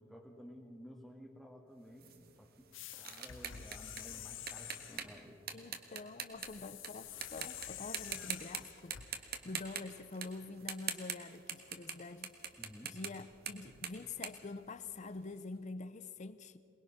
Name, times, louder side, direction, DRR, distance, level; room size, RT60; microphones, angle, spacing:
voice 1, 0.0-2.7 3.0-5.4 8.1-8.2 12.6-13.0, equal, ahead, 1.7 m, -54 dB
sound 1, 2.0-6.9 7.2-7.7 7.9-8.6 8.9-15.2, right 8 dB, 50° right, 1.5 m, -43 dB
sound 2, 2.7-5.1 6.4-9.1, left 11 dB, 70° left, 0.9 m, -48 dB
voice 2, 5.5-12.6 12.8-16.6, left 3 dB, 35° left, 0.7 m, -46 dB
22.5 x 20.5 x 5.8 m
head